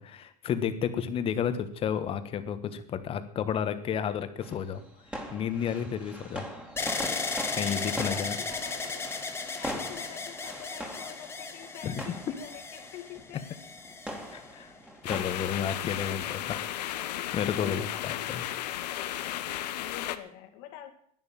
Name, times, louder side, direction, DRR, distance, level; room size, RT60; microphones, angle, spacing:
voice 1, 0.0-4.8 5.3-6.5 7.5-8.4 11.8-12.0 12.3-12.4 14.3-14.7 15.1-18.5, left 8 dB, 25° left, 10 dB, 1.4 m, -32 dB
sound 1, 4.4-15.2, equal, 5° right, 2.4 m, -42 dB
sound 2, 6.8-14.8 15.5-16.1, left 4 dB, 10° left, 1.6 m, -36 dB
voice 2, 7.6-9.1 9.5-13.5 15.9-16.1 17.8-18.3 19.3-20.9, left 12 dB, 55° left, 5 dB, 2.2 m, -47 dB
sound 3, 15.0-20.2, left 12 dB, 85° left, 1.1 m, -34 dB
11.0 x 9.7 x 9.0 m, 0.66 s
supercardioid pair, 145°, 21 cm